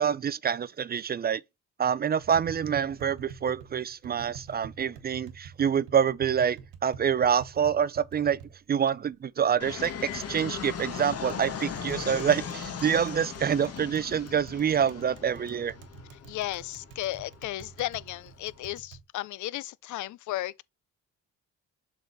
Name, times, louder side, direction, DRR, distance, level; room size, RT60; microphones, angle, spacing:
voice 1, 0.0-1.4 1.8-8.4 8.7-15.7, right 8 dB, 35° right, 0.4 m, -26 dB
Tap, 2.2-19.0, right 7 dB, 90° right, 1.3 m, -48 dB
Fixed-wing aircraft airplane, 9.6-18.6, left 7 dB, 55° left, 1.5 m, -39 dB
voice 2, 16.3-20.6, left 15 dB, 75° left, 0.5 m, -34 dB
6.9 x 3.8 x 4.0 m
cardioid pair, 90°, 30 cm